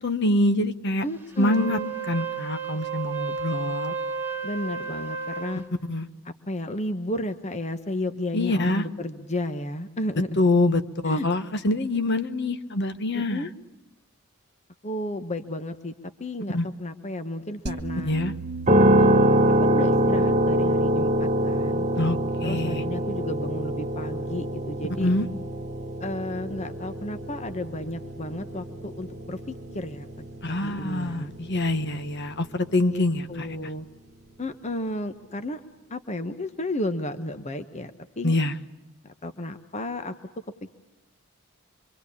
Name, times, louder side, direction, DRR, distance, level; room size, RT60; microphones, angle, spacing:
voice 1, 0.0-1.0 1.4-1.8 2.1-3.9 5.9-6.1 8.3-8.8 10.4-13.5 16.5-16.7 18.0-18.3 21.9-22.8 25.0-25.3 30.4-33.5 38.2-38.5, left 2 dB, 50° left, 10 dB, 1.3 m, -25 dB
voice 2, 1.0-1.9 4.4-5.6 6.5-10.3 11.1-11.3 13.1-13.5 14.8-15.9 16.2-18.2 18.8-21.9 22.4-25.1 26.0-30.1 30.4-31.3 32.9-33.0 33.3-33.9 34.4-35.6 35.9-38.3 39.0-40.1, left 1 dB, 30° left, 9 dB, 1.0 m, -32 dB
Wind instrument woodwind instrument, 1.3-5.6, right 5 dB, 10° right, 2.4 m, -32 dB
sound 1, 17.7-22.9, right 3 dB, 50° right, 1.8 m, -39 dB
sound 2, 18.7-32.7, right 1 dB, 30° right, 1.2 m, -25 dB
25.5 x 25.0 x 8.5 m, 0.94 s
head